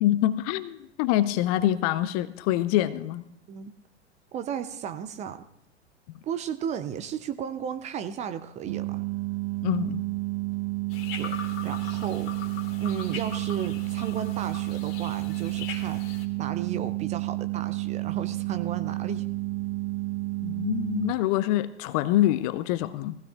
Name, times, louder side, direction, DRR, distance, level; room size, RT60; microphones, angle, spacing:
voice 1, 0.0-3.2 9.6-10.0 20.4-23.2, left 13 dB, 35° left, 14 dB, 0.5 m, -25 dB
voice 2, 4.3-5.4 6.2-9.0 11.2-12.3 12.8-16.1 16.4-19.2, right 8 dB, 20° right, 10 dB, 0.5 m, -34 dB
sound 1, 8.7-21.1, right 21 dB, 70° right, 0.7 m, -31 dB
sound 2, 10.9-16.2, left 6 dB, 50° left, 1.9 m, -40 dB
19.5 x 15.5 x 2.4 m, 0.81 s
figure-of-eight pair, 95°, 35 cm